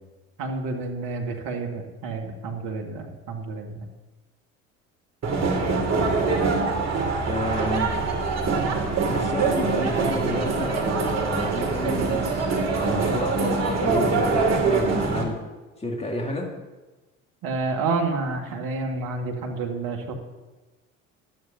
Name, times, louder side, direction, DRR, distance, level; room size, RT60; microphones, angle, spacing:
voice 1, 0.4-3.9 17.4-20.1, right 3 dB, 60° right, 2 dB, 2.3 m, -29 dB
sound 1, 5.2-15.2, right 4 dB, 40° right, 2.8 m, -24 dB
voice 2, 7.3-7.9 9.0-15.4 15.8-16.5, left 1 dB, 15° left, 0 dB, 2.6 m, -31 dB
19.0 x 12.0 x 2.9 m, 1.2 s
hypercardioid pair, 60°, 40 cm